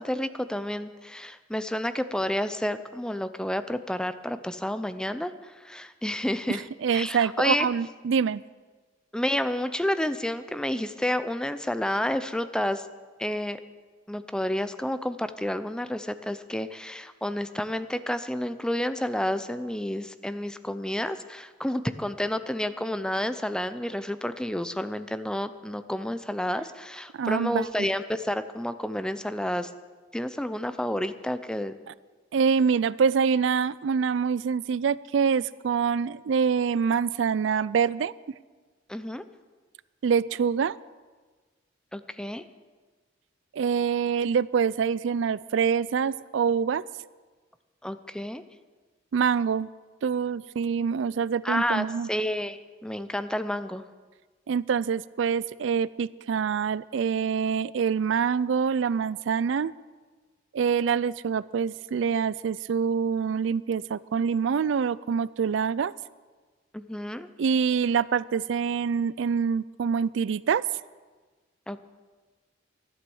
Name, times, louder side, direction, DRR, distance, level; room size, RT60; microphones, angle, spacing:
voice 1, 0.0-6.6 6.9-7.7 9.1-12.9 13.2-13.6 14.1-29.7 30.1-31.8 38.9-39.2 41.9-42.4 47.8-48.4 51.4-53.8 66.7-67.3 71.7-71.8, left 1 dB, 5° left, 11 dB, 0.5 m, -30 dB
voice 2, 6.5-8.4 27.1-27.9 32.3-38.1 40.0-40.7 43.5-46.8 49.1-49.7 50.0-52.1 54.5-59.7 60.5-65.9 67.4-70.6, right 6 dB, 70° right, 20 dB, 0.4 m, -25 dB
13.0 x 11.5 x 7.1 m, 1.4 s
head